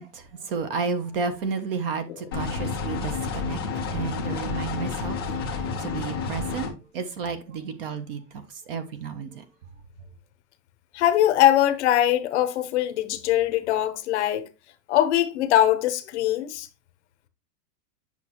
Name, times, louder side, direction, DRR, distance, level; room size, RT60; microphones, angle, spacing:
voice 1, 0.0-9.4, right 5 dB, 35° right, 0.6 m, -32 dB
sound 1, 2.3-6.7, left 5 dB, 20° left, 0.3 m, -30 dB
voice 2, 10.9-14.5 14.9-16.7, left 12 dB, 45° left, 0.7 m, -22 dB
8.2 x 5.8 x 2.8 m
supercardioid pair, 175°, 49 cm